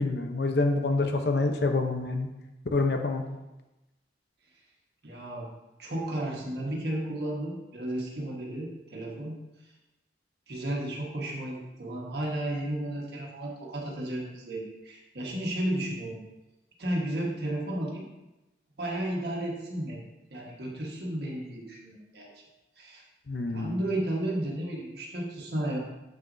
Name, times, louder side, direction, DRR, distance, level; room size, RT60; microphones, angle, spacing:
voice 1, 0.0-2.3 2.7-3.2 23.3-23.8, left 3 dB, 70° left, 5 dB, 0.7 m, -27 dB
voice 2, 5.0-5.5 5.8-9.4 10.5-16.2 16.8-18.1 18.8-20.0 20.3-22.4 22.8-23.0 23.5-25.8, right 1 dB, 70° right, -2 dB, 1.4 m, -33 dB
7.6 x 6.0 x 2.7 m, 1.0 s
head